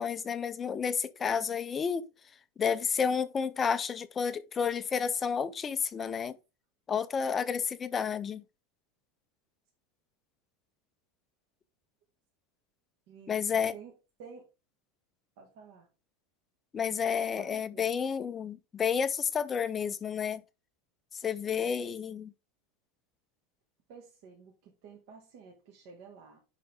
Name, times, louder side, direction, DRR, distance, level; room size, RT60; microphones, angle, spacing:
voice 1, 0.0-2.1 2.6-6.4 6.9-8.4 13.3-13.7 16.7-20.4 21.2-22.3, left 7 dB, 15° left, 0.4 m, -31 dB
voice 2, 13.1-13.4 13.7-13.9 14.2-14.5 15.4-15.9 17.4-17.9 21.4-22.0 23.9-26.4, right 5 dB, 45° right, 1.5 m, -51 dB
10.5 x 3.7 x 3.5 m
supercardioid pair, 175°, 0 cm